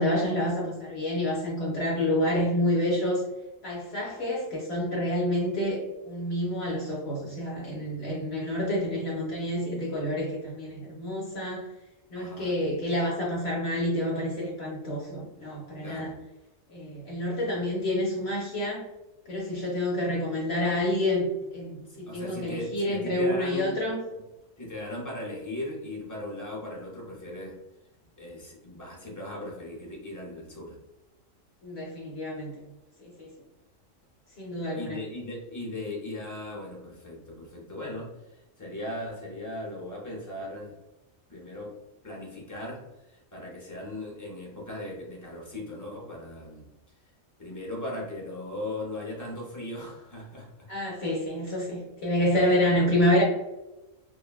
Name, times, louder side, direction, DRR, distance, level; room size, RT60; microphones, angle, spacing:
voice 1, 0.0-3.2 3.6-11.7 12.1-16.1 16.7-18.8 19.3-24.0 31.6-32.5 33.0-33.3 34.4-35.0 50.7-53.2, left 1 dB, 60° left, -4 dB, 0.8 m, -28 dB
voice 2, 12.1-12.6 15.8-16.1 21.9-23.8 24.1-24.2 24.6-27.6 28.2-30.8 34.8-40.8 41.3-41.8 42.0-46.7 47.4-50.7 52.4-52.8, left 1 dB, 25° left, -4 dB, 0.4 m, -38 dB
3.0 x 2.1 x 2.2 m, 1.0 s
omnidirectional pair, 1.3 m